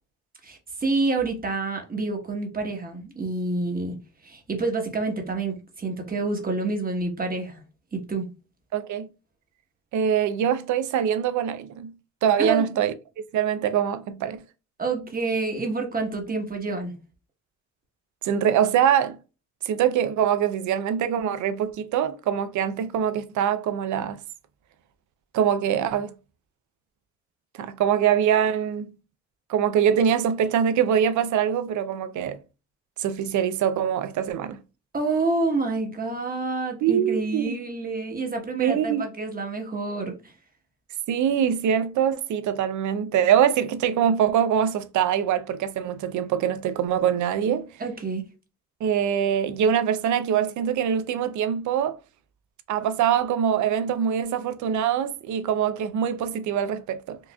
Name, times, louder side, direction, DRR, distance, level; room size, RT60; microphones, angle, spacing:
voice 1, 0.4-4.0 4.2-7.6 7.9-8.3 12.4-12.7 14.8-16.9 34.9-40.3 47.8-48.2, right 3 dB, 30° right, 1.2 m, -28 dB
voice 2, 8.7-9.1 9.9-11.9 12.2-12.9 13.3-14.4 18.2-19.2 19.7-24.2 25.3-26.1 27.6-28.9 29.5-32.4 33.0-34.6 36.8-37.6 38.6-39.0 41.1-47.7 48.8-52.0 52.7-57.2, right 9 dB, 70° right, 0.6 m, -23 dB
4.5 x 2.6 x 2.3 m
cardioid pair, 90°, 30 cm